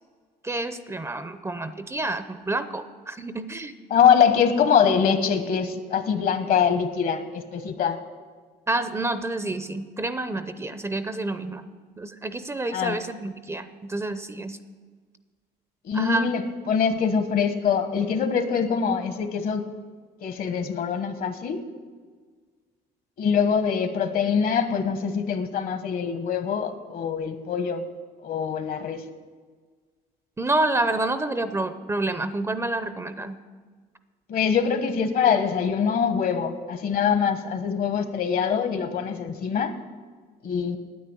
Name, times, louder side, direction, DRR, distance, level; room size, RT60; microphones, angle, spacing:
voice 1, 0.4-3.7 8.7-11.6 12.0-14.6 15.9-16.3 30.4-33.4, right 2 dB, 15° right, 11 dB, 0.6 m, -28 dB
voice 2, 3.9-8.0 12.7-13.0 15.8-19.6 20.2-21.6 23.2-27.9 28.2-29.0 34.3-39.7 40.4-40.8, left 7 dB, 60° left, 9 dB, 1.2 m, -23 dB
9.4 x 9.3 x 8.3 m, 1.5 s
cardioid pair, 110°, 17 cm